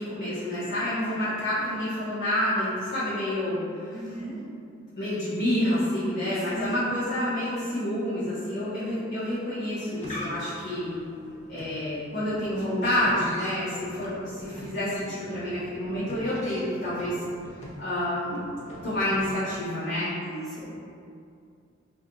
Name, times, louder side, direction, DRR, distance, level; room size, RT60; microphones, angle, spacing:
voice 1, 0.0-4.0 5.0-11.0 11.5-17.2 17.8-18.4 18.8-20.1, left 1 dB, 60° left, -13 dB, 0.9 m, -28 dB
voice 2, 3.9-4.4 6.4-6.8 20.2-20.7, right 2 dB, ahead, -9 dB, 0.8 m, -37 dB
sound 1, 9.6-19.6, equal, 35° left, 0.5 m, -43 dB
4.3 x 2.5 x 2.3 m, 2.4 s
head